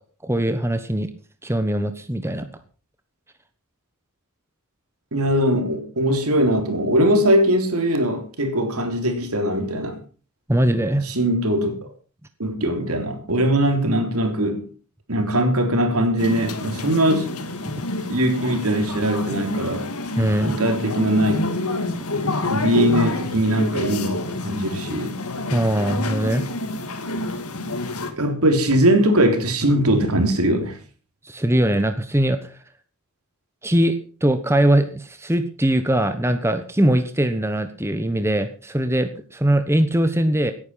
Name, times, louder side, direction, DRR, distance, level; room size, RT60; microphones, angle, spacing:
voice 1, 0.2-1.1 1.4-2.5 10.5-11.1 17.6-17.8 20.2-20.5 25.5-26.4 31.2-32.4 33.6-40.5, right 1 dB, 10° right, 1.2 m, -21 dB
voice 2, 5.1-10.0 11.0-11.7 12.4-14.7 15.1-17.3 18.1-19.9 20.4-21.4 22.5-25.1 28.1-30.8, right 1 dB, 75° right, 3.5 m, -21 dB
sound 1, 16.2-28.1, left 2 dB, 80° left, 2.4 m, -28 dB
17.0 x 10.0 x 5.8 m
head